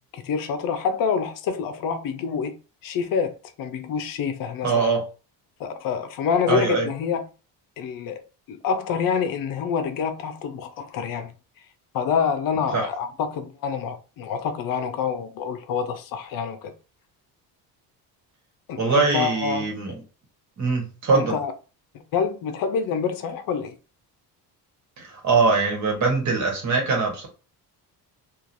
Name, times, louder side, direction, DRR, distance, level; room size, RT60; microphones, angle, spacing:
voice 1, 0.1-2.6 2.8-4.9 5.6-7.3 7.8-8.2 8.5-11.3 11.9-16.7 18.7-19.7 21.1-21.5 22.1-23.8, left 6 dB, 60° left, 0.6 m, -27 dB
voice 2, 4.6-5.0 6.5-6.9 12.7-12.9 18.8-19.9 20.6-21.4 25.0-27.3, right 4 dB, 45° right, 1.3 m, -22 dB
3.0 x 2.4 x 2.6 m
cardioid pair, 145°, 40 cm